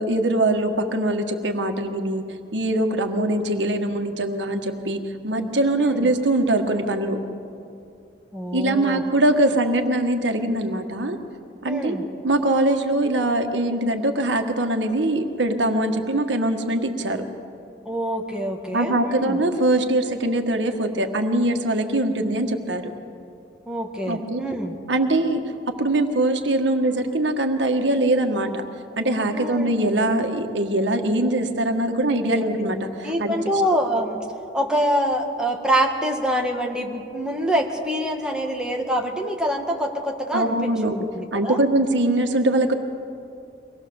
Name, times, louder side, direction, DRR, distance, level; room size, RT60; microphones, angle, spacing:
voice 1, 0.0-2.2 2.5-7.2 8.5-11.2 11.6-12.0 12.2-17.3 18.7-22.9 24.1-24.4 24.9-25.4 25.7-28.6 29.0-33.4 40.3-41.0 41.3-42.7, right 1 dB, 85° right, 5 dB, 1.6 m, -22 dB
voice 2, 5.8-6.1 8.3-9.0 11.6-12.0 17.9-19.4 23.7-24.8 29.3-29.8 32.3-32.4 33.0-34.2 34.5-41.6, equal, 5° right, 0 dB, 1.9 m, -25 dB
24.0 x 19.0 x 7.1 m, 2.6 s
head